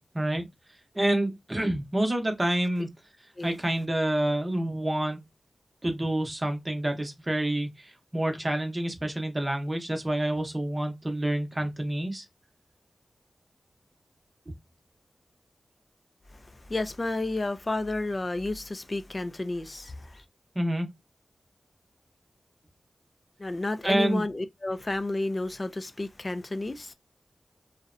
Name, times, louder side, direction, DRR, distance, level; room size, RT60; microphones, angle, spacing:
voice 1, 0.9-2.9 3.4-5.3 5.8-12.2 20.6-20.9 23.8-24.3, right 1 dB, 25° right, 0.7 m, -28 dB
voice 2, 16.3-20.2 23.4-26.9, left 2 dB, 35° left, 0.3 m, -31 dB
2.6 x 2.0 x 2.5 m
wide cardioid pair, 75°, 0 cm